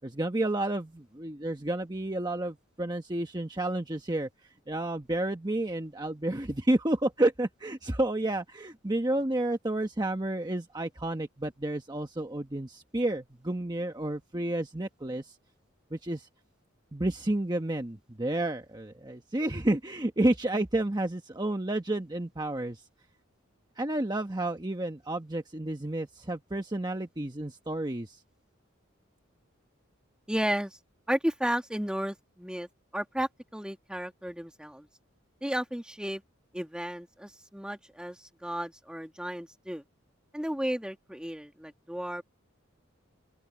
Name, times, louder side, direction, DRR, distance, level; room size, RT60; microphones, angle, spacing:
voice 1, 0.0-4.3 4.7-15.3 15.9-16.3 16.9-22.8 23.8-28.2, right 1 dB, 20° right, 1.1 m, -30 dB
voice 2, 30.3-30.8 31.1-34.9 35.4-36.2 36.5-39.8 40.3-42.2, equal, 5° right, 1.7 m, -33 dB
open air
head